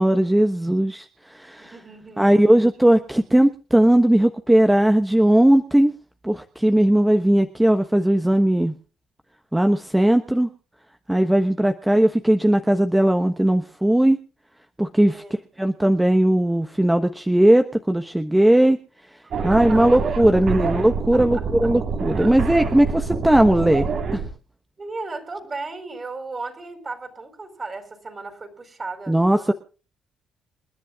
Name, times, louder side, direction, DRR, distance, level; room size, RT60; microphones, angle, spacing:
voice 1, 0.0-1.7 2.2-5.9 6.2-8.7 9.5-10.5 11.1-14.2 14.8-15.2 15.6-18.8 19.4-23.9 24.1-24.2 29.1-29.5, right 1 dB, 5° right, 7 dB, 1.1 m, -18 dB
voice 2, 1.6-2.4 15.1-15.4 19.2-19.9 21.1-21.7 22.1-22.4 24.8-29.5, right 3 dB, 30° right, 8 dB, 4.7 m, -36 dB
sound 1, 19.3-24.3, right 5 dB, 60° right, 3.9 m, -26 dB
28.5 x 10.5 x 2.4 m, 0.35 s
cardioid pair, 90°, 0 cm